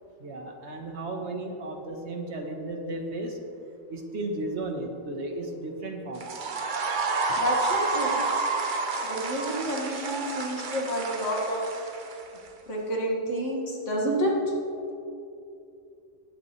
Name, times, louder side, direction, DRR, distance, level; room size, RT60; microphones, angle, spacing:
voice 1, 0.2-3.4 3.9-6.3 7.3-7.4, right 2 dB, 60° right, 3 dB, 1.3 m, -34 dB
sound 1, 6.1-12.5, right 4 dB, 45° right, 0.9 m, -30 dB
voice 2, 7.4-8.2 9.0-11.6 12.7-14.5, equal, 65° left, -3 dB, 2.4 m, -29 dB
18.5 x 8.2 x 3.2 m, 2.6 s
omnidirectional pair, 1.3 m